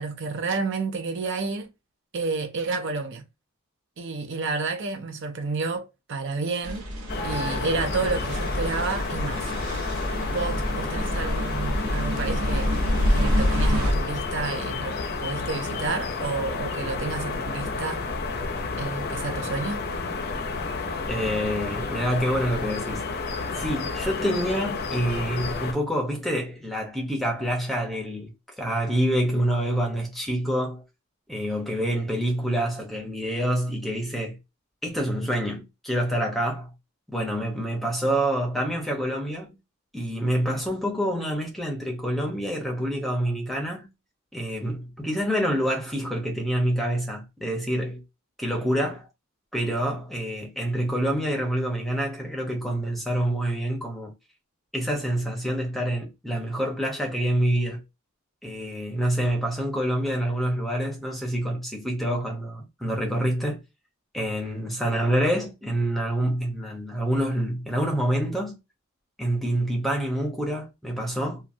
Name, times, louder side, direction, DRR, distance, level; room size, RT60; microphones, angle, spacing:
voice 1, 0.0-1.7 2.1-3.2 4.0-6.9 7.2-9.5 10.3-12.8 13.1-18.0 18.8-19.8, right 4 dB, 55° right, 0.6 m, -30 dB
sound 1, 6.6-13.9, equal, 85° right, 0.9 m, -28 dB
sound 2, 7.1-25.7, left 3 dB, 45° left, 0.5 m, -29 dB
voice 2, 21.1-23.0 23.5-30.8 31.3-34.4 34.8-36.7 37.1-39.6 39.9-43.9 44.3-48.0 48.4-49.1 49.5-54.1 54.7-57.8 58.4-63.6 64.1-68.6 69.2-71.4, right 1 dB, ahead, 0.8 m, -27 dB
3.0 x 2.3 x 2.6 m
head